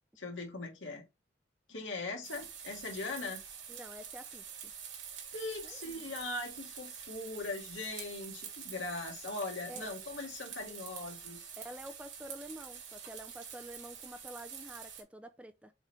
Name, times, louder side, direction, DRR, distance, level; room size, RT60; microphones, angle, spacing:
voice 1, 0.2-1.0 1.7-3.4 5.3-11.5, left 3 dB, 75° left, 2.1 m, -40 dB
sound 1, 2.2-15.0, right 7 dB, 85° right, 2.6 m, -47 dB
voice 2, 3.7-4.7 5.6-6.0 9.7-9.9 11.6-15.7, right 1 dB, 5° right, 0.4 m, -48 dB
6.8 x 4.5 x 3.2 m
head